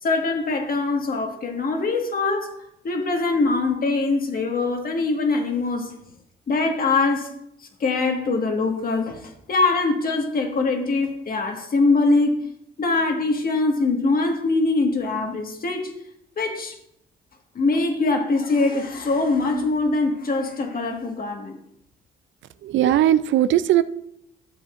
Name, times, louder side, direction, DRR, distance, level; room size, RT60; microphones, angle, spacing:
voice 1, 0.0-2.5 2.8-5.9 6.5-7.3 7.8-12.3 12.8-15.9 16.4-16.8 17.5-21.6, left 3 dB, 45° left, 3 dB, 1.7 m, -23 dB
voice 2, 22.6-23.8, right 12 dB, 70° right, 14 dB, 0.5 m, -18 dB
12.5 x 7.2 x 2.5 m, 0.75 s
cardioid pair, 90°, 20 cm